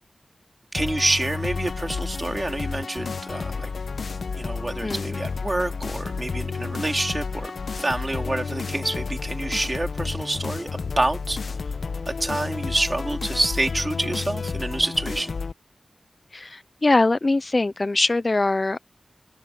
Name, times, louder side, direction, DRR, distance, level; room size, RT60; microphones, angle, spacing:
sound 1, 0.7-15.5, left 5 dB, 85° left, 1.0 m, -31 dB
voice 1, 0.7-3.7 4.4-11.4 12.1-15.4, right 2 dB, 25° right, 3.7 m, -27 dB
voice 2, 4.8-5.1 16.3-18.8, left 2 dB, 40° left, 0.5 m, -22 dB
open air
wide cardioid pair, 95°, 0 cm